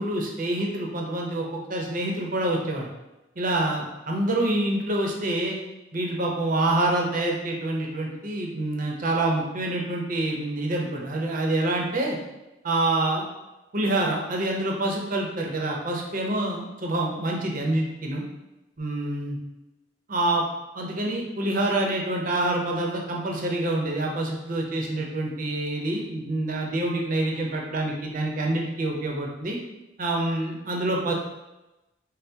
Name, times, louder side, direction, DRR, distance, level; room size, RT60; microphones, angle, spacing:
voice 1, 0.0-2.9 3.4-5.6 5.9-12.2 12.6-13.3 13.7-18.2 18.8-19.4 20.1-20.4 20.7-29.6 30.0-31.1, right 1 dB, 45° right, 0 dB, 0.7 m, -26 dB
5.5 x 2.0 x 2.8 m, 1.0 s
head